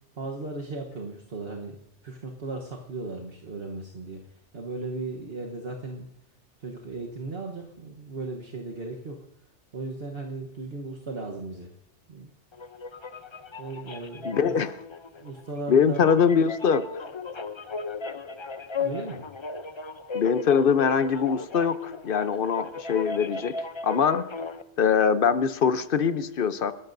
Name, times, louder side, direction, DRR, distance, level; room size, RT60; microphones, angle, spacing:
voice 1, 0.1-1.8 2.0-4.2 4.5-6.1 6.6-9.2 9.7-11.7 12.1-12.3 13.6-14.5 15.2-16.0 18.8-19.2, right 3 dB, 55° right, 0 dB, 1.4 m, -36 dB
sound 1, 12.5-24.6, left 4 dB, 30° left, 0.6 m, -36 dB
voice 2, 14.2-14.7 15.7-17.0 20.1-23.6 23.8-24.3 24.8-26.7, left 6 dB, 55° left, 12 dB, 0.9 m, -23 dB
29.0 x 12.5 x 2.7 m, 0.78 s
omnidirectional pair, 1.2 m